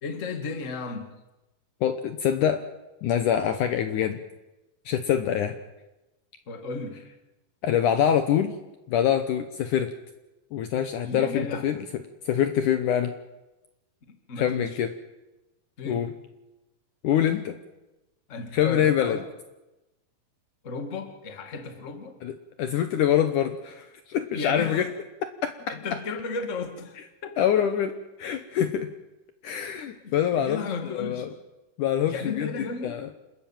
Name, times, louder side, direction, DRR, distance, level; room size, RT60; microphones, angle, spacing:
voice 1, 0.0-1.1 6.5-7.0 11.0-11.7 14.1-14.8 15.8-16.1 18.3-19.2 20.6-22.2 24.3-24.9 25.7-27.7 29.7-31.3 32.1-33.0, left 4 dB, 25° left, 6 dB, 1.7 m, -34 dB
voice 2, 1.8-2.6 3.0-4.2 4.9-5.6 7.6-8.5 8.9-9.9 10.5-11.8 12.3-13.1 14.4-14.9 15.9-16.1 17.0-17.6 18.5-19.2 22.2-24.9 25.4-25.5 27.4-27.9 28.2-28.9 29.4-31.3 31.8-32.5 32.8-33.1, left 9 dB, 70° left, 9 dB, 2.2 m, -25 dB
27.5 x 13.5 x 9.0 m, 1.0 s
omnidirectional pair, 4.3 m